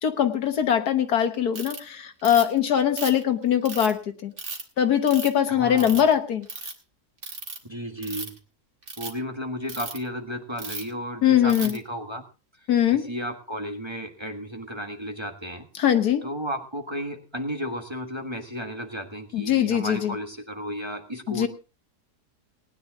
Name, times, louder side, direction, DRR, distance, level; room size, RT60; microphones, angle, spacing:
voice 1, 0.0-4.3 4.8-6.5 11.2-11.8 12.7-13.0 15.8-16.2 19.3-20.1 21.3-21.5, left 9 dB, 75° left, 8 dB, 1.7 m, -22 dB
Ratchet pawl, 1.5-1.8 2.2-2.6 3.0-3.9 4.4-4.6 5.1-5.4 5.8-6.1 6.4-6.7 7.2-7.6 8.0-8.4 8.8-9.1 9.7-10.0 10.6-10.9 11.5-11.8, right 3 dB, 50° right, 2.3 m, -35 dB
voice 2, 5.5-6.0 7.6-8.3 9.0-12.2 12.9-15.7 16.2-21.5, equal, 20° right, 3 dB, 1.5 m, -33 dB
19.0 x 10.5 x 3.7 m, 0.33 s
omnidirectional pair, 1.7 m